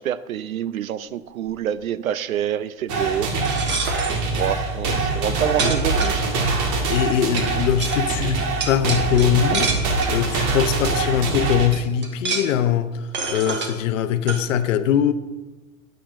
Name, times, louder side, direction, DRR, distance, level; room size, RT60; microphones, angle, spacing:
voice 1, 0.0-3.3 4.3-6.3, right 10 dB, 85° right, 0.6 m, -27 dB
sound 1, 2.9-11.7, right 3 dB, 45° right, 1.9 m, -24 dB
sound 2, 3.3-4.2 5.1-5.2 5.6-6.6 7.4-7.5 7.8-8.0 8.6-10.2 10.8-10.9 11.3-11.4 11.7-12.6 13.1-13.7 14.3-14.4, right 4 dB, 25° right, 1.4 m, -27 dB
voice 2, 6.9-9.7 10.1-12.9 13.3-15.1, left 9 dB, 65° left, 0.9 m, -21 dB
20.0 x 7.8 x 2.6 m
hypercardioid pair, 100°, 41 cm